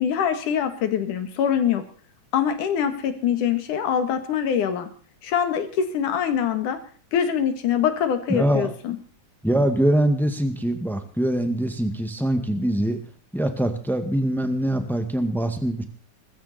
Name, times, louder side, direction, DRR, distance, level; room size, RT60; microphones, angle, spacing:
voice 1, 0.0-1.8 2.3-4.9 5.2-6.8 7.1-9.0, left 8 dB, 90° left, 8 dB, 3.3 m, -24 dB
voice 2, 8.3-8.7 9.4-13.0 13.3-15.8, right 1 dB, ahead, 7 dB, 0.9 m, -23 dB
21.5 x 14.5 x 4.3 m, 0.41 s
omnidirectional pair, 3.5 m